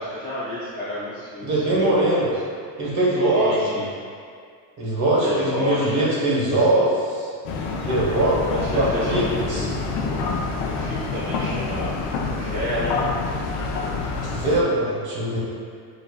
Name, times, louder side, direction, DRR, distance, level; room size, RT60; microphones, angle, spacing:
voice 1, 0.0-2.0 3.3-3.9 5.2-5.9 6.5-6.6 8.5-11.9 12.4-13.0, left 1 dB, 10° left, -13 dB, 0.4 m, -31 dB
voice 2, 1.4-2.3 2.8-3.8 4.8-7.3 7.8-9.7 14.2-15.4, right 1 dB, 35° right, -7 dB, 1.4 m, -22 dB
sound 1, 7.4-14.6, left 3 dB, 60° left, 0.6 m, -27 dB
7.4 x 2.6 x 2.4 m, 2.2 s
cardioid pair, 175°, 48 cm